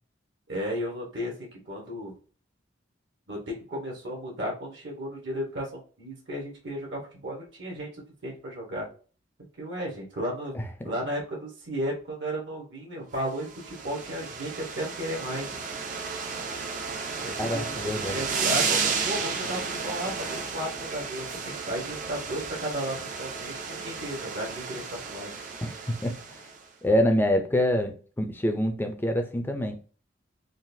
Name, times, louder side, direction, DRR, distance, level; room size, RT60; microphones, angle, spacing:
voice 1, 0.5-2.1 3.3-8.9 9.6-10.5 10.8-15.5 17.2-17.7 18.1-25.3, equal, 65° right, 1.2 m, -34 dB
voice 2, 10.5-10.9 17.4-18.2 25.6-26.4 26.8-29.8, equal, 10° left, 0.5 m, -26 dB
sound 1, 13.3-26.6, right 5 dB, 40° right, 0.6 m, -33 dB
3.9 x 2.5 x 2.6 m
head